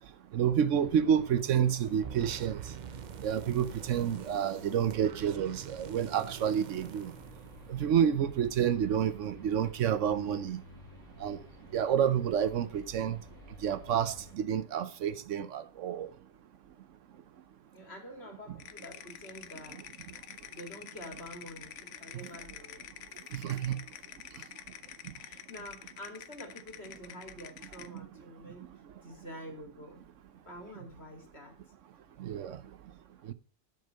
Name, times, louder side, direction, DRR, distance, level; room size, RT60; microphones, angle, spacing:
voice 1, 0.3-2.6 3.2-7.1 7.7-10.6 11.2-11.4 11.7-13.2 13.6-16.1 23.4-23.8 32.2-32.6 33.3-33.4, right 8 dB, 75° right, 1.1 m, -29 dB
sound 1, 0.7-14.3, left 2 dB, 35° right, 4.2 m, -52 dB
sound 2, 2.0-8.2, right 9 dB, 55° right, 0.5 m, -46 dB
voice 2, 17.7-19.8 20.5-22.9 25.2-28.7 29.0-30.0 30.4-31.6, equal, 55° left, 2.6 m, -47 dB
sound 3, 18.6-28.0, left 9 dB, 70° left, 1.0 m, -48 dB
10.5 x 6.8 x 5.5 m
omnidirectional pair, 1.3 m